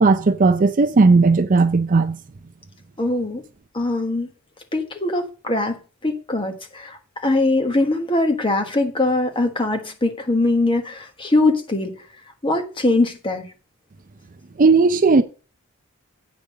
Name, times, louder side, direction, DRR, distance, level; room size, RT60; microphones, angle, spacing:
voice 1, 0.0-2.2 14.6-15.2, right 3 dB, 35° right, 0.5 m, -15 dB
voice 2, 3.0-3.4 3.7-4.3 4.7-11.9 12.4-13.5, left 2 dB, 25° left, 1.4 m, -22 dB
8.5 x 5.2 x 6.4 m
head